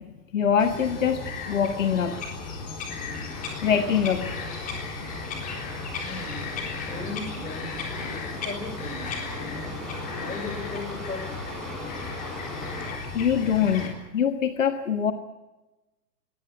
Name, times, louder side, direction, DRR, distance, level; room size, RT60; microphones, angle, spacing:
voice 1, 0.0-2.7 3.6-4.7 13.1-15.1, left 7 dB, 50° left, 9 dB, 1.5 m, -25 dB
Bird vocalization bird call bird song, 0.6-13.9, left 4 dB, 15° left, 3.8 m, -35 dB
sound 1, 3.3-12.9, equal, ahead, 6.2 m, -40 dB
voice 2, 6.1-7.9 8.4-9.2 10.1-11.2, left 3 dB, 75° left, 7 dB, 5.7 m, -37 dB
22.5 x 18.0 x 8.5 m, 1.1 s
figure-of-eight pair, 120°, 48 cm